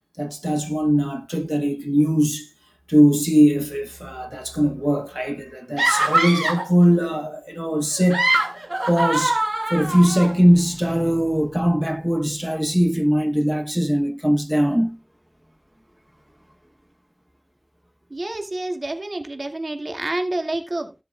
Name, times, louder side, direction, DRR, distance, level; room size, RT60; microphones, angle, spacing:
voice 1, 0.2-2.5 2.9-8.3 8.9-9.4 9.7-15.0, equal, 5° right, 0.9 m, -20 dB
sound 1, 5.8-6.7 7.9-10.3, right 1 dB, 40° right, 1.5 m, -22 dB
voice 2, 18.1-20.9, right 2 dB, 65° right, 2.2 m, -28 dB
16.5 x 7.4 x 2.4 m
wide cardioid pair, 50°, 0 cm